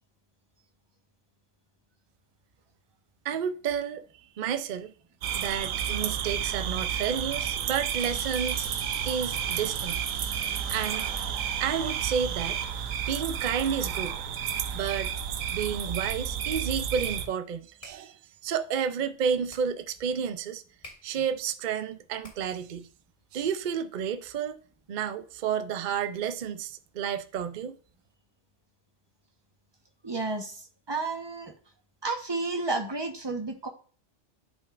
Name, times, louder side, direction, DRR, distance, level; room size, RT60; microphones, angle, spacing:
voice 1, 3.2-4.0 4.4-4.9 5.3-8.7 9.0-11.1 11.6-12.6 13.1-14.2 14.7-15.1 15.5-18.2 18.4-20.6 21.0-22.9 23.3-24.6 24.9-27.8, right 7 dB, 50° right, 0.6 m, -31 dB
sound 1, 5.2-17.3, right 8 dB, 80° right, 1.1 m, -31 dB
sound 2, 8.0-13.0, left 3 dB, 70° left, 1.8 m, -47 dB
sound 3, 17.7-22.8, left 1 dB, 40° left, 3.0 m, -54 dB
voice 2, 30.0-31.5 32.0-33.7, right 3 dB, 20° right, 1.1 m, -32 dB
11.5 x 5.3 x 2.5 m
omnidirectional pair, 1.4 m